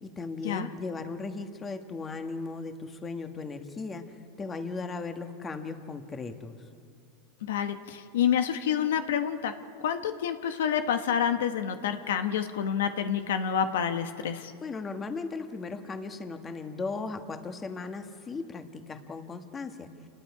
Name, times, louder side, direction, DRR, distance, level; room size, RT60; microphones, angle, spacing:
voice 1, 0.0-6.7 14.3-20.1, left 4 dB, 20° left, 7 dB, 1.4 m, -37 dB
voice 2, 7.4-9.5 9.8-14.5, left 8 dB, 85° left, 8 dB, 1.2 m, -28 dB
28.5 x 20.5 x 4.9 m, 2.4 s
supercardioid pair, 135°, 0 cm